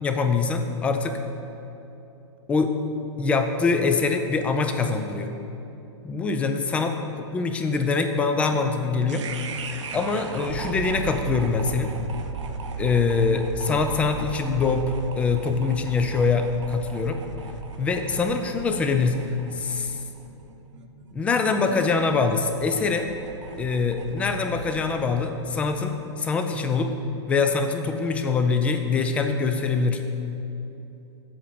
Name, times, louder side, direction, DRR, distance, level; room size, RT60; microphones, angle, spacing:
voice 1, 0.0-1.2 2.5-2.7 3.2-5.3 6.0-6.9 7.3-9.2 9.9-11.9 12.8-17.2 17.8-19.3 19.6-20.0 21.1-23.1 23.6-26.9 27.3-30.0, left 4 dB, 10° left, 7 dB, 0.3 m, -24 dB
sound 1, 9.1-25.3, right 4 dB, 85° right, 0.8 m, -36 dB
7.7 x 5.6 x 6.8 m, 2.9 s
hypercardioid pair, 155°, 15 cm